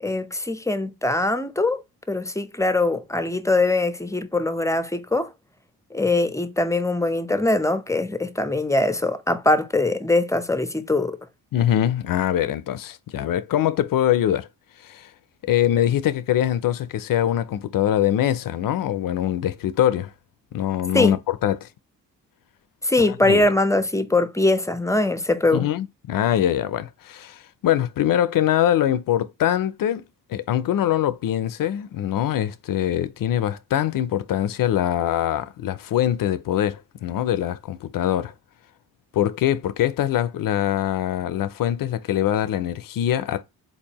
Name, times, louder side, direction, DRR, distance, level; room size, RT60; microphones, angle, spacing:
voice 1, 0.0-5.3 5.9-11.2 20.9-21.2 22.8-25.7, left 2 dB, 10° left, 0.6 m, -22 dB
voice 2, 11.5-14.5 14.8-15.1 15.4-20.1 20.5-21.7 23.0-23.4 25.5-30.0 30.3-38.3 39.1-43.4, left 11 dB, 60° left, 0.5 m, -23 dB
4.1 x 2.6 x 2.8 m
supercardioid pair, 60°, 38 cm